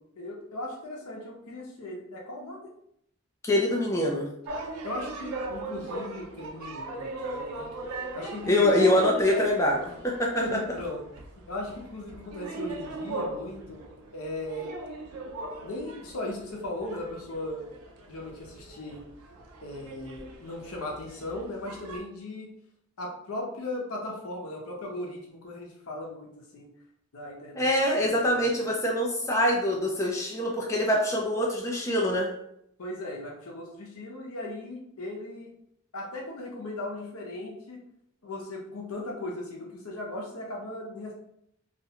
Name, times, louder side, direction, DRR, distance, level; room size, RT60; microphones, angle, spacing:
voice 1, 0.2-2.6 4.8-7.7 8.1-9.0 10.4-11.0 11.5-13.8 14.1-14.7 15.6-17.7 18.1-19.0 19.6-22.5 23.0-26.7 27.1-27.7 28.0-28.5 32.8-35.5 35.9-37.8 38.2-41.1, left 1 dB, 80° left, 0 dB, 0.6 m, -37 dB
voice 2, 3.4-4.3 8.5-10.4 27.6-32.3, left 1 dB, 15° left, -2 dB, 0.3 m, -24 dB
sound 1, 4.5-22.0, right 2 dB, 90° right, 0.4 m, -39 dB
2.3 x 2.1 x 2.8 m, 0.74 s
head